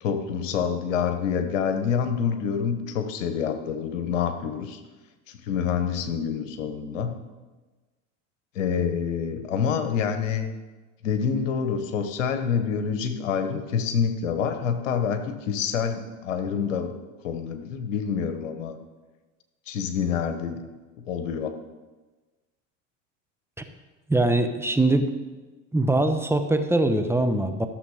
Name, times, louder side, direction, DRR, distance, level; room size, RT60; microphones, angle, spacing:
voice 1, 0.0-4.8 5.3-7.2 8.5-10.5 11.0-16.9 17.2-18.8 19.7-20.6 21.0-21.5, left 7 dB, 90° left, 8 dB, 1.2 m, -27 dB
voice 2, 24.1-25.1 25.7-27.7, right 2 dB, 5° right, 6 dB, 0.9 m, -22 dB
14.0 x 7.0 x 4.9 m, 1.2 s
hypercardioid pair, 90°, 37 cm